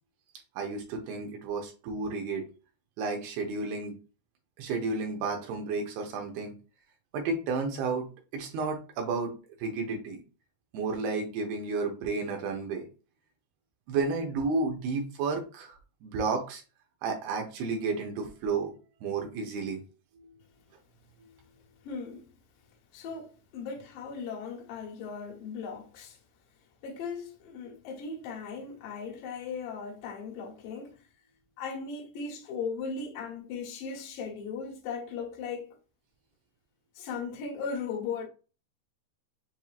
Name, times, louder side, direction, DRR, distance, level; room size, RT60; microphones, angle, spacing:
voice 1, 0.6-2.5 3.0-4.0 4.6-6.5 7.1-8.1 8.3-9.3 9.6-10.2 10.7-12.9 13.9-16.6 17.0-18.7 19.0-19.8 27.6-27.7, right 4 dB, 75° right, 2.6 m, -32 dB
voice 2, 21.8-22.3 22.9-26.2 26.8-31.0 31.6-35.8 37.0-38.3, left 5 dB, 65° left, 2.3 m, -37 dB
7.1 x 2.7 x 2.4 m
omnidirectional pair, 4.9 m